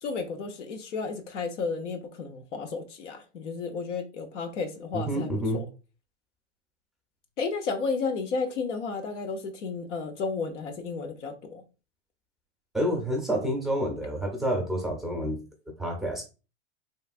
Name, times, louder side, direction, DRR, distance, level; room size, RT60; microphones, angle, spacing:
voice 1, 0.0-5.6 7.4-11.6, left 4 dB, 90° left, 0.8 m, -32 dB
voice 2, 4.9-5.6 12.7-15.4 15.8-16.2, equal, ahead, 0.6 m, -28 dB
3.2 x 2.2 x 2.4 m
hypercardioid pair, 120°, 35 cm